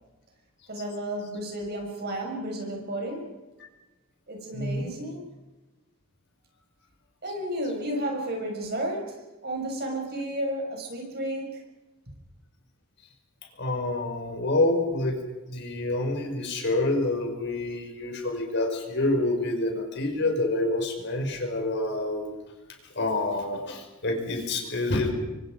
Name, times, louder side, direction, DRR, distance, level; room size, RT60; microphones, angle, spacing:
voice 1, 0.7-3.3 4.3-5.2 7.2-11.6, right 1 dB, 50° right, 2 dB, 6.3 m, -32 dB
voice 2, 4.5-4.9 13.6-15.2 15.5-22.3 23.0-25.1, left 2 dB, 55° left, 3 dB, 5.2 m, -27 dB
29.5 x 24.5 x 5.2 m, 1.1 s
head